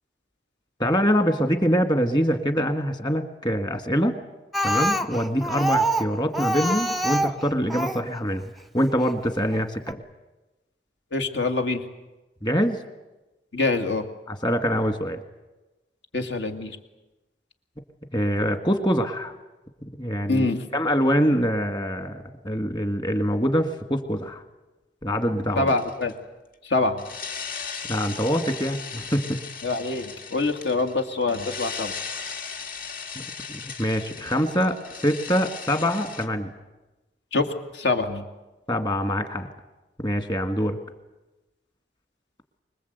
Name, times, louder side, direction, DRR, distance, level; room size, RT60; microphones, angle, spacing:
voice 1, 0.8-4.2 4.6-8.4 8.7-10.0 12.4-12.8 14.3-15.2 18.1-19.3 20.0-24.4 25.0-25.7 27.9-29.4 33.2-33.3 33.5-36.5 38.7-39.5 40.0-40.8, equal, 25° left, 7 dB, 1.8 m, -24 dB
Speech, 4.5-8.1 9.0-9.1 9.5-9.6 9.9-10.0, right 1 dB, ahead, 0.7 m, -25 dB
voice 2, 11.1-11.8 13.5-14.1 16.1-16.8 20.3-20.7 25.6-26.1 26.6-27.0 29.6-31.9 37.3-38.2, left 3 dB, 70° left, 5 dB, 2.2 m, -25 dB
sound 1, 25.7-26.1 27.0-36.3, left 6 dB, 55° left, 1.9 m, -37 dB
25.0 x 21.0 x 8.1 m, 1.1 s
head